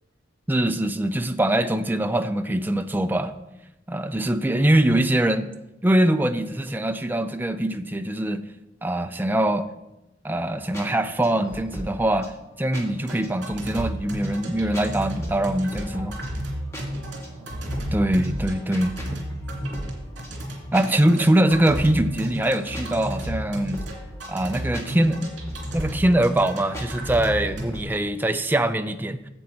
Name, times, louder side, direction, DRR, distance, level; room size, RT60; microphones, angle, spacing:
voice 1, 0.5-3.3 3.9-5.5 5.8-8.4 8.8-9.7 10.2-16.2 17.9-19.2 20.7-23.8 24.3-25.3 25.7-29.3, right 1 dB, 10° right, 9 dB, 0.4 m, -23 dB
sound 1, 10.4-27.8, equal, 15° left, 1.6 m, -40 dB
sound 2, 13.0-27.6, equal, 75° right, 2.5 m, -33 dB
voice 2, 16.8-18.1 18.5-19.9, right 1 dB, 45° right, -3 dB, 1.2 m, -47 dB
9.9 x 7.5 x 4.1 m, 0.94 s
head